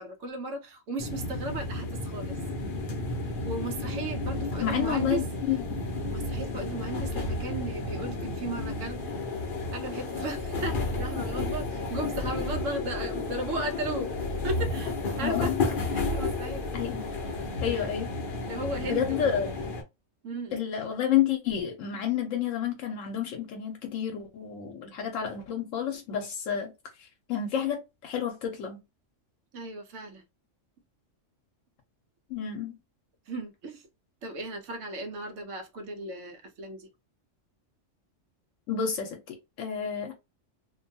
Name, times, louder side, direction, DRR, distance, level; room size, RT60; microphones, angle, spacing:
voice 1, 0.0-2.4 3.2-5.2 6.1-9.0 9.7-14.1 14.4-15.5 15.9-16.7 17.7-17.9 18.4-19.4 20.2-20.7 29.5-30.2 33.3-33.9 34.2-36.9, right 2 dB, 75° right, 1.0 m, -36 dB
sound 1, 1.0-19.8, left 2 dB, 50° left, 0.7 m, -32 dB
voice 2, 4.6-5.8 15.2-15.5 16.7-17.1 17.6-18.1 18.8-19.7 20.5-26.7 27.0-27.8 28.0-28.8 32.3-32.8 38.7-40.1, left 9 dB, 85° left, 1.0 m, -30 dB
2.6 x 2.2 x 2.6 m
omnidirectional pair, 1.3 m